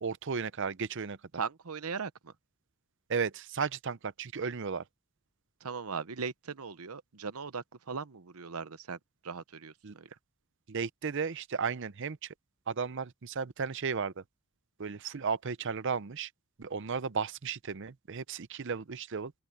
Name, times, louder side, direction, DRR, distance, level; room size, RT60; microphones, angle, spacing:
voice 1, 0.0-1.2 3.1-4.8 9.8-10.0 10.7-12.3 12.7-14.2 14.8-16.3 16.6-19.3, right 5 dB, 55° right, 0.6 m, -34 dB
voice 2, 1.3-2.3 5.6-10.1, right 5 dB, 80° right, 0.9 m, -39 dB
open air
head